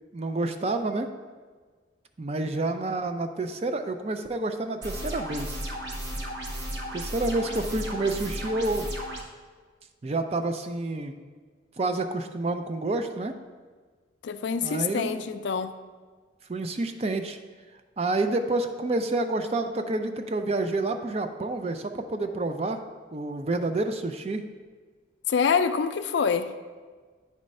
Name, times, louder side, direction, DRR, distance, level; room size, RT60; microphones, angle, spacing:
voice 1, 0.1-1.1 2.2-5.7 6.9-8.9 10.0-11.2 11.8-13.3 14.6-15.2 16.5-17.4 18.0-22.8 23.1-24.5, right 2 dB, 35° right, 7 dB, 0.4 m, -29 dB
sound 1, 4.8-9.2, right 1 dB, 70° right, 1.0 m, -34 dB
voice 2, 14.2-15.7 25.3-26.5, left 6 dB, 70° left, 11 dB, 0.4 m, -26 dB
8.6 x 3.1 x 5.3 m, 1.5 s
head